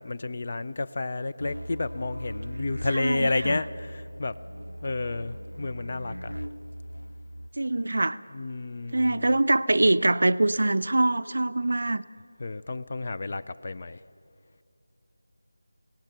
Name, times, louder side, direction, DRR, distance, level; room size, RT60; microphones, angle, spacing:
voice 1, 0.0-4.4 4.8-6.3 8.3-9.3 12.4-14.0, left 3 dB, 35° left, 12 dB, 0.5 m, -31 dB
sound 1, 1.4-7.5, equal, 90° left, 0.4 m, -39 dB
voice 2, 2.9-3.6 7.6-8.2 8.9-12.0, right 2 dB, 55° right, 14 dB, 0.5 m, -24 dB
23.0 x 17.5 x 6.9 m, 2.4 s
figure-of-eight pair, 165°, 0 cm